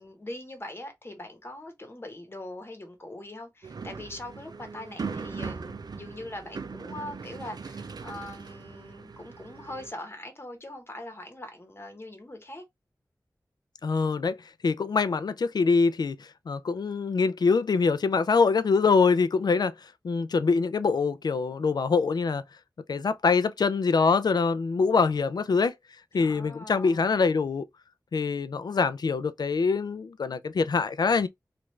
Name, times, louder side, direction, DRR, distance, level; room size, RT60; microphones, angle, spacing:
voice 1, 0.0-12.6 26.1-27.2, left 1 dB, 35° left, 1.0 m, -42 dB
sound 1, 3.6-9.9, right 5 dB, 80° right, 0.4 m, -39 dB
voice 2, 13.8-14.4 14.6-19.7 20.0-22.4 22.9-25.7 26.1-27.7 28.1-31.3, left 4 dB, 80° left, 0.3 m, -24 dB
3.2 x 2.5 x 3.1 m
wide cardioid pair, 80°, 7 cm